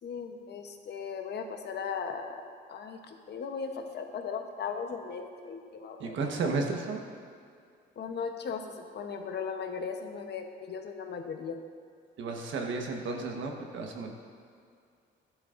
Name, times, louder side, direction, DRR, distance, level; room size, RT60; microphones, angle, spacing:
voice 1, 0.0-2.4 2.7-6.2 8.0-11.6, left 6 dB, 55° left, 5 dB, 1.0 m, -37 dB
voice 2, 6.0-7.0 12.2-14.2, right 3 dB, 75° right, 2 dB, 1.3 m, -33 dB
12.5 x 11.0 x 2.6 m, 2.3 s
cardioid pair, 90°, 20 cm